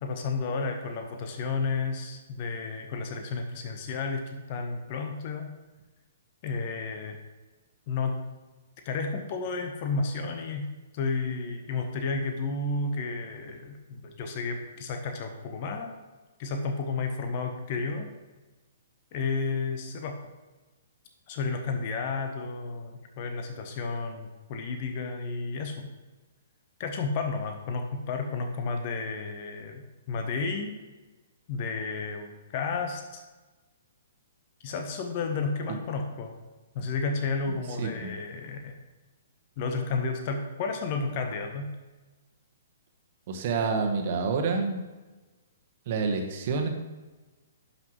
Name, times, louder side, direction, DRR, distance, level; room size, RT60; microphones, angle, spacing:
voice 1, 0.0-5.5 6.4-7.2 7.9-8.2 8.8-10.7 10.9-15.9 16.4-18.1 19.1-20.2 21.3-25.9 26.8-30.8 31.5-33.2 34.6-36.4 36.7-38.8 39.6-41.7, left 4 dB, 40° left, 4 dB, 1.0 m, -32 dB
voice 2, 37.8-38.1 43.3-44.8 45.9-46.7, right 4 dB, 45° right, 4 dB, 1.3 m, -28 dB
11.5 x 5.8 x 3.2 m, 1.2 s
figure-of-eight pair, 120°, 0 cm